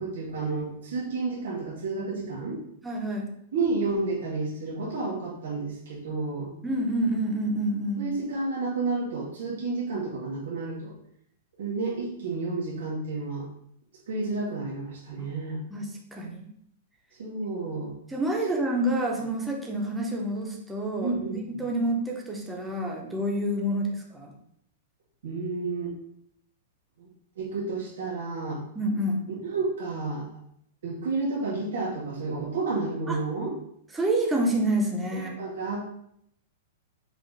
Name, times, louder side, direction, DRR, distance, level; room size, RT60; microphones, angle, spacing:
voice 1, 0.0-2.6 3.5-6.5 8.0-10.9 11.6-13.4 14.1-15.6 17.2-17.9 21.0-21.6 25.2-25.9 27.0-27.1 27.4-28.6 29.4-30.3 30.8-33.5 35.1-35.9, right 3 dB, 90° right, -5 dB, 1.6 m, -31 dB
voice 2, 2.8-3.3 6.6-8.0 15.2-15.3 15.7-16.5 18.1-24.3 28.8-29.2 33.1-33.2 33.9-35.3, right 1 dB, 5° right, -1 dB, 0.5 m, -28 dB
5.1 x 2.4 x 3.7 m, 0.72 s
supercardioid pair, 170°, 0 cm